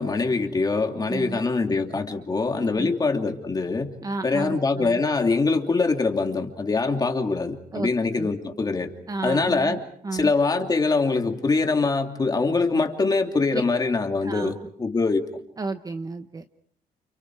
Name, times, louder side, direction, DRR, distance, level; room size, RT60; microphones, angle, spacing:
voice 1, 0.0-3.9 4.2-8.9 9.2-9.8 10.1-15.3, left 3 dB, 25° left, 4 dB, 2.8 m, -23 dB
voice 2, 1.1-1.4 2.8-2.9 4.0-5.0 7.7-8.4 9.1-10.3 13.5-13.6 14.2-14.5 15.6-16.5, right 3 dB, 25° right, 9 dB, 1.0 m, -32 dB
30.0 x 29.5 x 4.8 m, 0.62 s
cardioid pair, 140°, 16 cm